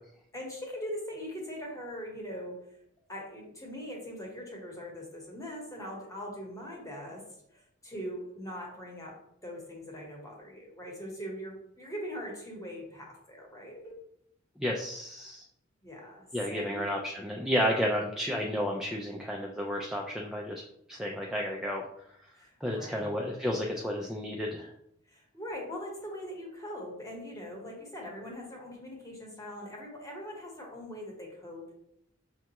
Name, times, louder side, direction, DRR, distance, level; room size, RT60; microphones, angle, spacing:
voice 1, 0.3-2.6 3.1-7.2 7.5-9.2 9.4-13.9 15.8-16.9 22.4-23.3 25.1-31.7, equal, 15° left, -1 dB, 1.0 m, -41 dB
voice 2, 14.6-15.4 16.3-20.6 20.9-21.9 22.6-24.7, equal, ahead, -1 dB, 0.3 m, -32 dB
6.2 x 2.3 x 2.8 m, 0.75 s
head